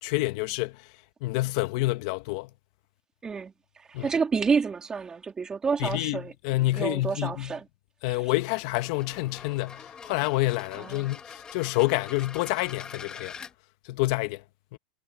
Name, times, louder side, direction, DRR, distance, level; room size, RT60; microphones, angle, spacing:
voice 1, 0.0-0.9 1.2-2.5 3.9-4.1 5.8-7.6 8.0-13.4 13.8-14.4 14.7-14.8, left 20 dB, 60° left, 1.8 m, -28 dB
voice 2, 3.2-6.3 6.7-7.7 8.1-8.2 10.8-11.1, right 5 dB, 20° right, 2.6 m, -29 dB
sound 1, 8.2-13.5, left 6 dB, 20° left, 2.1 m, -44 dB
supercardioid pair, 120°, 4 cm